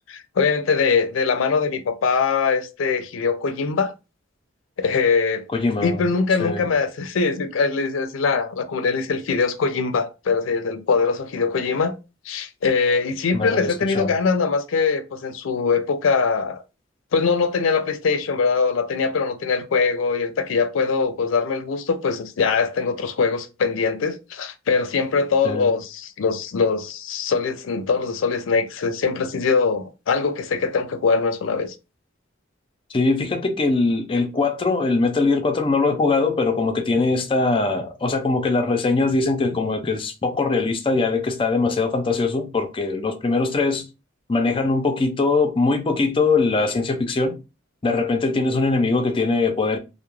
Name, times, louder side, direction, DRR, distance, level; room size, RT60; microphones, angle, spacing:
voice 1, 0.1-3.9 4.8-5.4 5.8-11.9 12.3-16.6 17.1-31.7, left 5 dB, 85° left, 0.4 m, -22 dB
voice 2, 5.5-6.0 6.4-6.6 13.3-14.1 25.4-25.7 32.9-43.9 44.3-47.4 47.8-49.8, left 3 dB, 25° left, 0.4 m, -21 dB
2.3 x 2.0 x 2.9 m
head